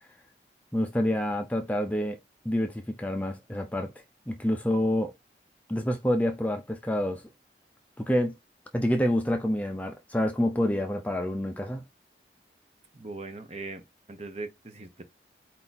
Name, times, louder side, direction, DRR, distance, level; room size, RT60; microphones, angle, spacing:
voice 1, 0.7-3.9 4.3-5.1 5.7-7.2 8.0-8.3 8.7-11.8, equal, 10° left, 0.5 m, -27 dB
voice 2, 12.9-13.8 14.1-15.0, right 3 dB, 35° right, 0.8 m, -39 dB
4.5 x 2.8 x 4.0 m
head